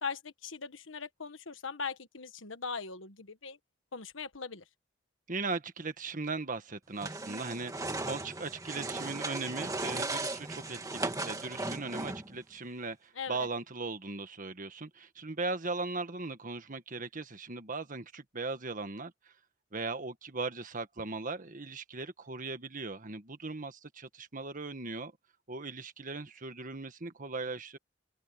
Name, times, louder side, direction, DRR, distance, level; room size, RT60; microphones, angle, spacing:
voice 1, 0.0-3.6 3.9-4.6 13.2-13.5, left 5 dB, 80° left, 1.4 m, -40 dB
voice 2, 5.3-19.3 19.7-25.1 25.5-27.8, right 3 dB, 45° right, 1.5 m, -38 dB
sound 1, 7.0-12.4, right 2 dB, 20° right, 1.9 m, -37 dB
open air
head